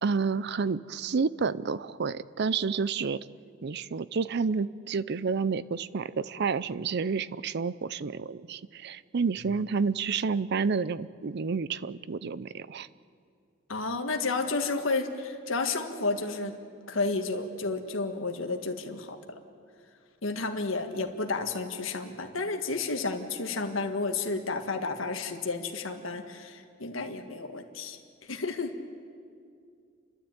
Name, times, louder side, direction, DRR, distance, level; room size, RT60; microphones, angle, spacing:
voice 1, 0.0-3.2 3.6-12.9, right 5 dB, 55° right, 17 dB, 0.5 m, -30 dB
voice 2, 13.7-16.5 16.9-19.4 20.2-28.0 28.3-28.7, left 3 dB, 80° left, 5 dB, 1.7 m, -31 dB
30.0 x 12.5 x 8.9 m, 2.3 s
head